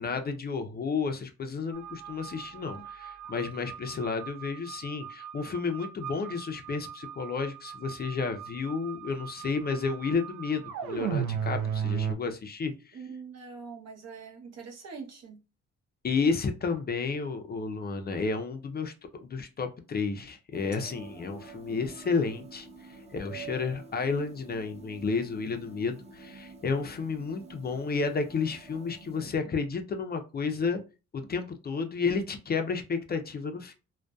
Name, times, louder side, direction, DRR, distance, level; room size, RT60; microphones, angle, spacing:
voice 1, 0.0-13.0 16.0-18.9 19.2-30.8 31.1-33.7, left 4 dB, 30° left, 0.4 m, -31 dB
sound 1, 1.7-12.2, right 8 dB, 80° right, 0.5 m, -37 dB
voice 2, 12.9-15.4, right 5 dB, 60° right, 0.8 m, -44 dB
sound 2, 20.5-29.3, right 4 dB, 20° right, 0.6 m, -48 dB
2.5 x 2.2 x 2.3 m
cardioid pair, 90°, 30 cm